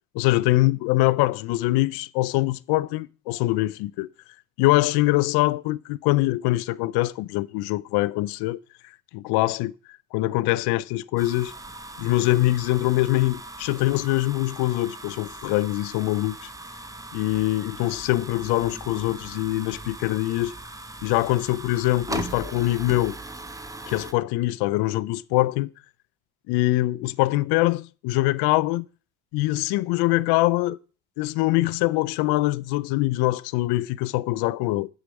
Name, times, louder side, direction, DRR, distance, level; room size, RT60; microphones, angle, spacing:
voice 1, 0.1-4.1 4.6-8.6 9.1-9.7 10.1-11.5 12.0-16.5 17.1-20.5 21.0-23.2 23.9-25.7 26.5-28.8 29.3-30.8 31.2-34.9, left 18 dB, 80° left, 0.5 m, -23 dB
sound 1, 11.2-24.1, right 2 dB, 10° right, 0.8 m, -39 dB
6.3 x 4.9 x 5.2 m
supercardioid pair, 75°, 38 cm